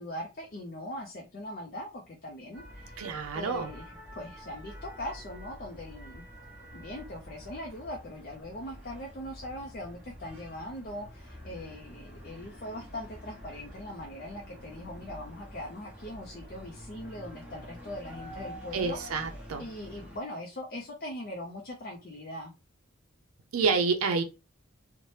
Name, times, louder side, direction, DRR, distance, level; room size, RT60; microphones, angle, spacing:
voice 1, 0.0-3.1 3.3-6.2 6.6-19.0 19.6-22.5, left 1 dB, 45° left, 0 dB, 0.4 m, -41 dB
sound 1, 2.5-20.2, equal, 5° right, 0.7 m, -47 dB
voice 2, 3.0-3.7 18.7-19.6 23.5-24.2, right 4 dB, 80° right, 4 dB, 0.4 m, -28 dB
2.8 x 2.1 x 3.1 m, 0.28 s
head